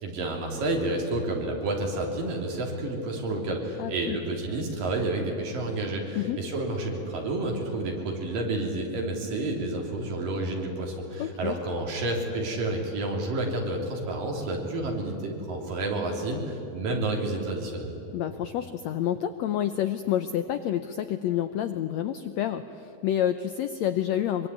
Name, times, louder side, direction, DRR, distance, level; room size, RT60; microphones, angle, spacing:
voice 1, 0.0-17.9, right 2 dB, 75° right, 1 dB, 5.0 m, -30 dB
voice 2, 3.8-4.2 6.2-6.4 11.2-11.6 18.1-24.5, left 11 dB, 80° left, 10 dB, 1.6 m, -28 dB
23.5 x 23.0 x 9.6 m, 2.9 s
omnidirectional pair, 4.0 m